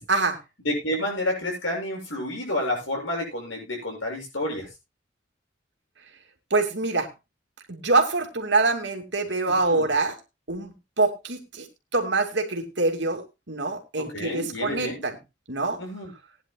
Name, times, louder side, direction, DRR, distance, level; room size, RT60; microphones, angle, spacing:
voice 1, 0.7-4.7 9.6-9.8 14.0-15.0 15.8-16.1, left 1 dB, 90° left, 1 dB, 7.2 m, -29 dB
voice 2, 6.5-7.1 7.7-10.2 10.5-11.6 11.9-13.2 13.5-15.2 15.5-15.8, right 3 dB, 70° right, 4 dB, 2.6 m, -25 dB
19.5 x 10.5 x 2.4 m, 0.24 s
head